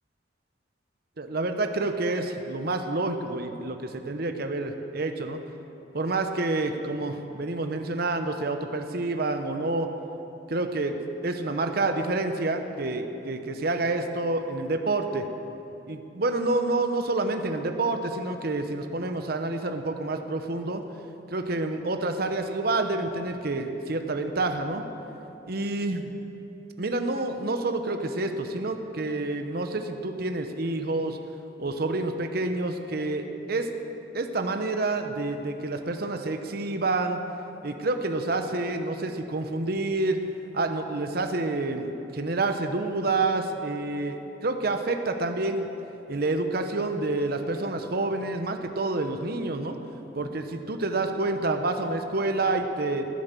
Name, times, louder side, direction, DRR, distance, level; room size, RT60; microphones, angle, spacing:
voice 1, 1.2-5.4 5.9-9.9 10.5-11.0 11.2-15.3 15.9-20.8 21.3-24.8 25.5-26.1 26.8-31.2 31.6-33.7 34.1-37.2 37.6-40.2 40.5-45.7 46.1-49.8 50.1-53.1, right 2 dB, 55° right, 6 dB, 0.9 m, -28 dB
15.5 x 9.7 x 6.8 m, 2.9 s
head